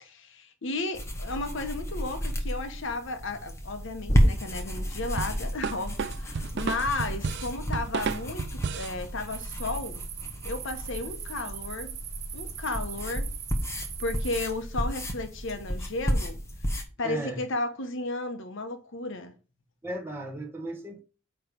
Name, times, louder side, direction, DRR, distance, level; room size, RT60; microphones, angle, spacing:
voice 1, 0.0-10.0 10.4-11.9 12.3-13.3 14.0-16.4 17.0-19.3, left 2 dB, 65° left, 1.1 m, -34 dB
sound 1, 0.9-16.9, equal, 15° left, 1.2 m, -32 dB
sound 2, 5.2-9.0, right 5 dB, 55° right, 0.4 m, -32 dB
sound 3, 9.3-14.4, right 9 dB, 75° right, 1.1 m, -41 dB
voice 2, 17.0-17.4 19.8-21.0, right 1 dB, 10° right, 1.5 m, -35 dB
9.0 x 3.3 x 5.2 m
head